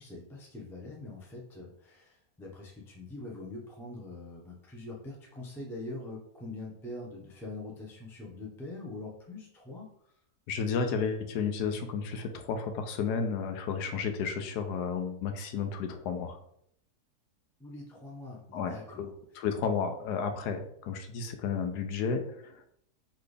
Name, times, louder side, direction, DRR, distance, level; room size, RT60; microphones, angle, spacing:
voice 1, 0.0-10.1 17.6-19.1, left 2 dB, 5° left, -2 dB, 0.3 m, -43 dB
voice 2, 10.5-16.4 18.5-19.1 19.4-22.7, left 6 dB, 90° left, 6 dB, 1.2 m, -32 dB
4.1 x 3.2 x 3.3 m, 0.71 s
omnidirectional pair, 1.7 m